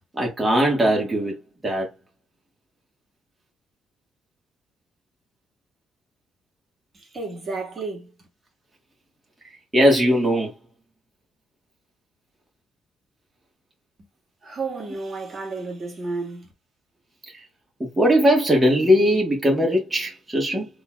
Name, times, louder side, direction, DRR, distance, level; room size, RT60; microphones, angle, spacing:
voice 1, 0.2-1.4 1.6-1.9 9.7-10.5 17.8-20.7, equal, 20° right, 1.6 m, -19 dB
voice 2, 6.9-8.1 14.4-16.5, right 3 dB, 40° right, 1.8 m, -32 dB
3.9 x 3.2 x 2.4 m
cardioid pair, 90°, 0 cm